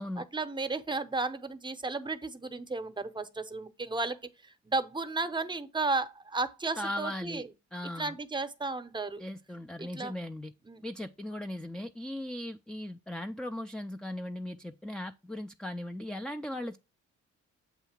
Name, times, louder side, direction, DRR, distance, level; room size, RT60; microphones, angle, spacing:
voice 1, 0.2-7.5 8.0-9.2 9.8-10.1 10.7-10.8, right 3 dB, 15° right, 0.8 m, -34 dB
voice 2, 6.8-7.4 7.7-8.2 9.2-10.5 10.8-16.8, left 1 dB, 5° left, 0.3 m, -38 dB
8.0 x 2.7 x 5.7 m
cardioid pair, 90°, 30 cm